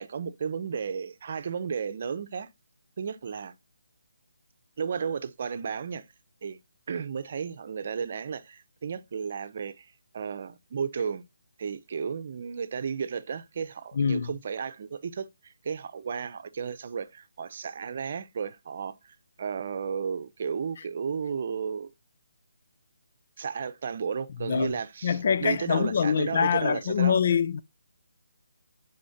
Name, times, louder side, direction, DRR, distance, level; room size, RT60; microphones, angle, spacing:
voice 1, 0.0-2.5 3.0-3.5 4.8-6.1 6.4-6.6 6.9-11.2 11.6-18.9 19.4-21.9 23.4-27.2, right 6 dB, 45° right, 0.7 m, -33 dB
voice 2, 13.9-14.3 20.8-20.9 24.4-24.7 25.0-27.6, left 7 dB, 50° left, 0.5 m, -25 dB
11.0 x 4.3 x 2.8 m
figure-of-eight pair, 155°, 0 cm